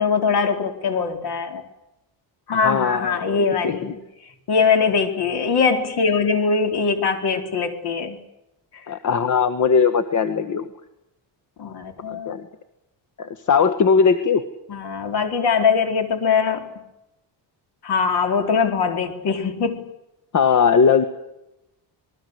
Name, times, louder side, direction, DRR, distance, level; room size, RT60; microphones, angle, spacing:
voice 1, 0.0-1.6 2.5-4.0 4.5-8.2 8.7-8.8 11.6-12.4 14.7-16.7 17.8-19.8, left 5 dB, 60° left, 6 dB, 4.3 m, -22 dB
voice 2, 2.6-3.9 8.9-10.7 12.1-12.4 13.2-14.4 20.3-21.0, left 6 dB, 40° left, 10 dB, 1.5 m, -19 dB
27.5 x 21.0 x 8.0 m, 0.89 s
cardioid pair, 160°, 44 cm